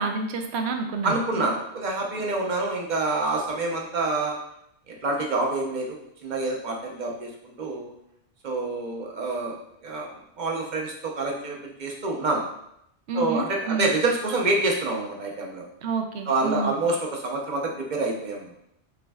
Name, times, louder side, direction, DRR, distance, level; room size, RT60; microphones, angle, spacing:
voice 1, 0.0-1.4 13.1-13.9 15.8-16.7, right 3 dB, 75° right, 5 dB, 0.8 m, -29 dB
voice 2, 1.0-4.4 4.9-6.0 6.2-7.9 8.4-9.5 9.8-10.1 10.4-12.4 13.1-15.6 16.3-18.5, right 2 dB, 45° right, 0 dB, 0.9 m, -27 dB
5.9 x 3.1 x 2.3 m, 0.76 s
omnidirectional pair, 1.1 m